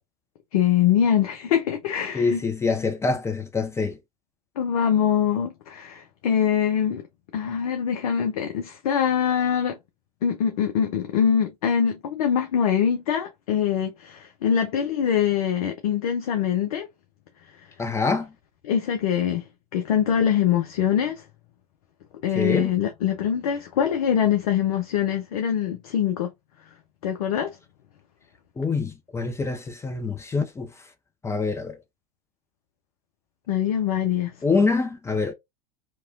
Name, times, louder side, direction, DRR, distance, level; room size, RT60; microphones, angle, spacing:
voice 1, 0.5-2.4 4.6-7.0 7.3-9.8 10.2-16.9 18.6-19.4 19.7-21.2 22.2-26.3 27.0-27.6 33.5-34.3, left 8 dB, 65° left, 0.6 m, -23 dB
voice 2, 2.1-4.0 17.8-18.3 22.3-22.7 28.6-30.7 31.2-31.8 34.4-35.3, left 4 dB, 15° left, 0.5 m, -25 dB
2.9 x 2.2 x 2.6 m
hypercardioid pair, 85°, 20 cm